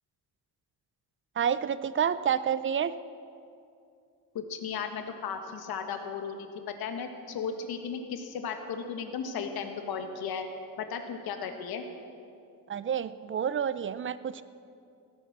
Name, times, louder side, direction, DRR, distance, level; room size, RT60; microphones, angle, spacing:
voice 1, 1.4-2.9 12.7-14.4, right 8 dB, 35° right, 15 dB, 0.5 m, -29 dB
voice 2, 4.3-10.5 10.8-11.8, left 6 dB, 85° left, 6 dB, 1.6 m, -35 dB
16.5 x 10.5 x 7.4 m, 2.5 s
cardioid pair, 120°, 36 cm